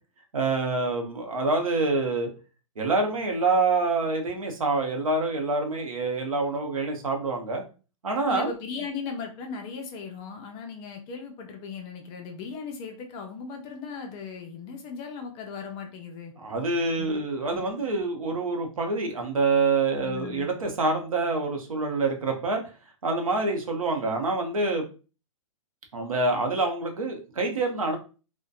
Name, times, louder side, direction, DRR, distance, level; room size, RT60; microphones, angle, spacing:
voice 1, 0.3-2.3 2.8-7.6 8.0-8.5 16.4-22.6 23.0-24.8 25.9-28.0, right 3 dB, 85° right, 3 dB, 0.7 m, -26 dB
voice 2, 8.3-16.3 17.0-17.2 17.5-17.6 20.0-20.5, left 5 dB, 25° left, 3 dB, 0.5 m, -37 dB
2.6 x 2.1 x 2.3 m, 0.34 s
hypercardioid pair, 125°, 17 cm